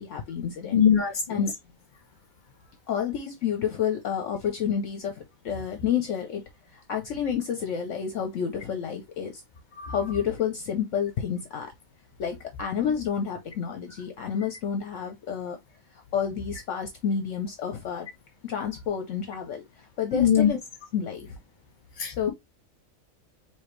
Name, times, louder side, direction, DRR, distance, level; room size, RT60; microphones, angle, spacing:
voice 1, 0.0-0.8 1.3-1.5 2.9-9.4 9.9-11.7 12.2-15.6 15.9-18.1 18.4-20.6 20.9-21.4 22.1-22.3, left 7 dB, 65° left, 1.0 m, -30 dB
voice 2, 0.7-1.4 9.8-10.0 20.1-20.5 22.0-22.3, left 8 dB, 35° left, 1.3 m, -22 dB
4.9 x 3.0 x 3.1 m
omnidirectional pair, 1.4 m